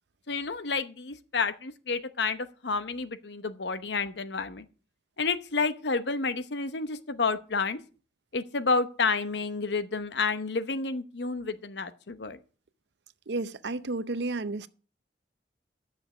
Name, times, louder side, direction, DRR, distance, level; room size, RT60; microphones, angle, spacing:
voice 1, 0.3-4.7 5.2-7.8 8.3-12.4, left 4 dB, 70° left, 0.9 m, -30 dB
voice 2, 13.3-14.7, right 3 dB, 70° right, 0.6 m, -32 dB
10.0 x 6.8 x 6.1 m
head